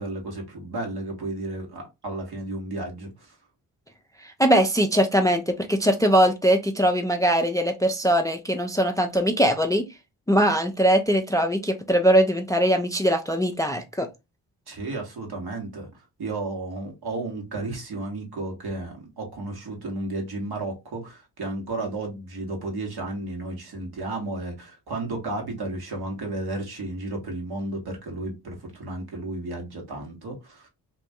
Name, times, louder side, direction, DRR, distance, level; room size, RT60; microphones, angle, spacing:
voice 1, 0.0-3.3 14.7-15.9 16.2-30.7, right 2 dB, 60° right, 1.5 m, -33 dB
voice 2, 4.4-9.9 10.3-14.1, equal, 10° left, 0.5 m, -21 dB
2.9 x 2.6 x 3.5 m
supercardioid pair, 45°, 42 cm